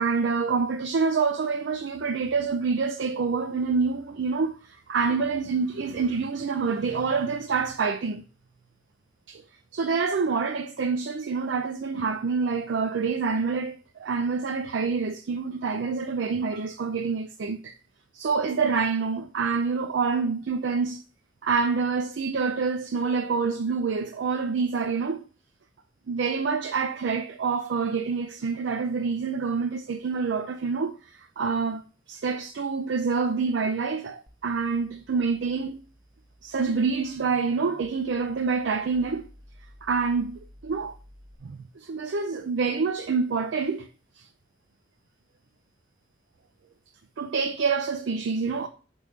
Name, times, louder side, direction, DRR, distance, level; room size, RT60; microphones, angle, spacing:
voice 1, 0.0-8.2 9.3-9.4 9.7-17.8 18.1-21.0 21.4-25.2 26.1-31.8 32.1-35.8 36.4-39.3 39.8-40.9 41.4-43.9 44.2-44.3 47.2-48.7, right 5 dB, 80° right, 0.5 m, -27 dB
sound 1, 34.3-41.4, equal, ahead, 0.7 m, -54 dB
6.4 x 5.3 x 3.2 m
head